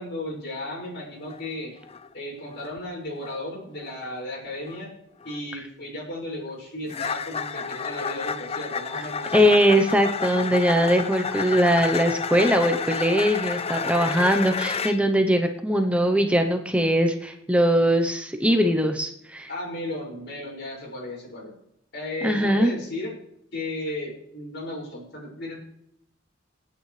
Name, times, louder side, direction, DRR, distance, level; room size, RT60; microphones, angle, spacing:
voice 1, 0.0-1.7 2.1-4.9 5.2-9.5 19.5-21.6 21.9-23.1 23.5-25.6, left 1 dB, 60° left, -3 dB, 6.0 m, -35 dB
sound 1, 1.2-1.4 1.8-2.1 2.5-2.8 3.2-3.4 3.8-4.0 4.7-4.8 5.2-5.4 6.9-15.0, left 5 dB, 30° left, 0.5 m, -31 dB
voice 2, 9.3-19.5 22.2-22.7, equal, 5° right, 5 dB, 0.8 m, -21 dB
27.5 x 9.2 x 3.3 m, 0.79 s
head